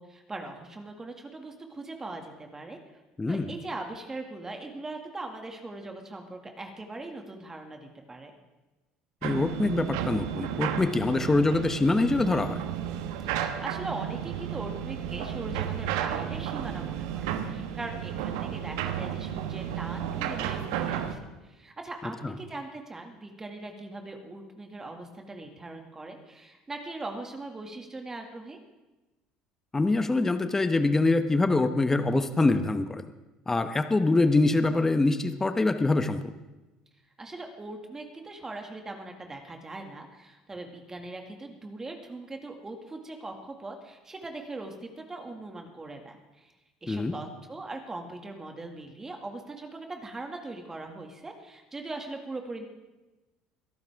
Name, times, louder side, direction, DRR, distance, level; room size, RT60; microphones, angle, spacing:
voice 1, 0.0-2.8 3.3-8.3 13.3-28.6 37.2-46.5 46.8-52.6, right 2 dB, 20° right, 3 dB, 2.1 m, -40 dB
voice 2, 3.2-3.5 9.2-12.6 22.2-22.3 29.7-33.0 33.5-36.3 46.9-47.2, left 2 dB, 15° left, 9 dB, 1.0 m, -24 dB
sound 1, 9.2-21.1, right 10 dB, 80° right, 1.1 m, -33 dB
22.5 x 12.0 x 3.6 m, 1.1 s
supercardioid pair, 85°, 2 cm